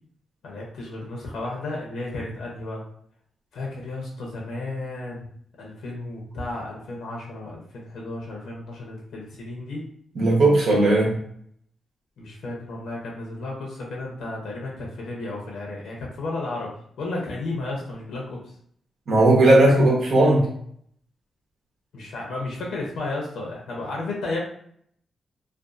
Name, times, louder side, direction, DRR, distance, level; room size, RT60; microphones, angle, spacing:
voice 1, 0.4-2.8 3.5-5.3 5.6-9.9 12.2-18.4 21.9-24.4, left 2 dB, 90° left, -2 dB, 0.7 m, -33 dB
voice 2, 10.1-11.2 19.1-20.5, right 2 dB, 55° right, -3 dB, 0.8 m, -17 dB
2.5 x 2.4 x 2.4 m, 0.66 s
wide cardioid pair, 145°, 0 cm